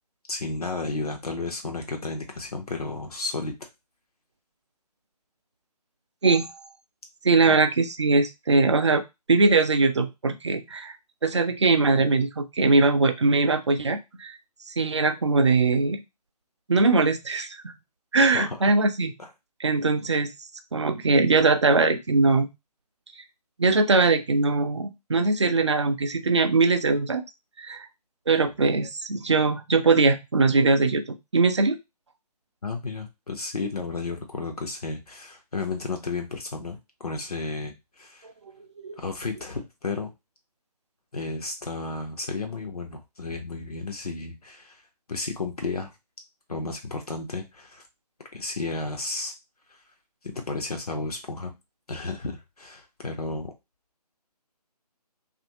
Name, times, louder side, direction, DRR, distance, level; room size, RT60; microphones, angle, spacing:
voice 1, 0.3-3.5 7.5-7.6 18.3-18.7 19.2-19.3 32.6-38.3 39.0-40.1 41.1-44.8 45.1-45.9 46.5-47.8 48.3-49.3 50.2-51.5 51.9-53.5, left 3 dB, 65° left, 4 dB, 0.7 m, -33 dB
voice 2, 6.2-6.6 7.2-9.0 9.3-11.0 11.2-14.3 14.7-16.0 16.7-17.7 18.1-19.1 19.6-20.3 20.7-22.5 23.6-27.2 27.6-27.9 28.3-31.8 38.2-38.3 38.8-38.9, right 3 dB, 45° right, 8 dB, 0.4 m, -21 dB
2.7 x 2.5 x 2.7 m, 0.22 s
figure-of-eight pair, 150°, 21 cm